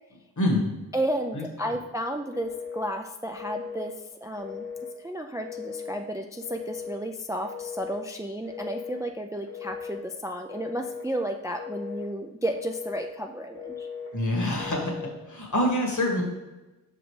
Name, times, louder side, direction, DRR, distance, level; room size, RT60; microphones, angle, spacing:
voice 1, 0.4-0.7 1.3-1.4 14.1-14.9 15.3-16.2, left 1 dB, 55° left, 0 dB, 1.6 m, -25 dB
voice 2, 0.9-3.9 4.2-4.7 5.0-13.9, right 1 dB, 10° right, 4 dB, 0.3 m, -32 dB
Telephone, 2.3-2.9 3.4-3.9 4.4-4.9 5.4-6.0 6.4-7.0 7.4-8.0 8.5-9.0 9.5-10.0 10.5-11.1 11.5-12.1 12.5-13.1 13.6-14.1 14.6-15.1, left 6 dB, 85° left, 1.8 m, -38 dB
6.0 x 5.1 x 3.2 m, 1.1 s
wide cardioid pair, 75°, 37 cm